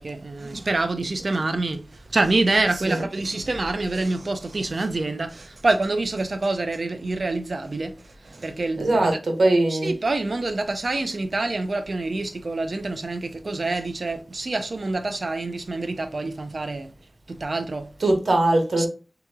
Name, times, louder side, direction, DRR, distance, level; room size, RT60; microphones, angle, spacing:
voice 1, 0.0-7.9 8.2-9.1 9.7-16.9 17.3-17.9 18.8-18.9, right 2 dB, 60° right, 0.6 m, -26 dB
voice 2, 8.8-9.9 18.0-18.9, right 2 dB, 90° right, 1.2 m, -20 dB
6.4 x 3.0 x 2.3 m
wide cardioid pair, 75°, 0 cm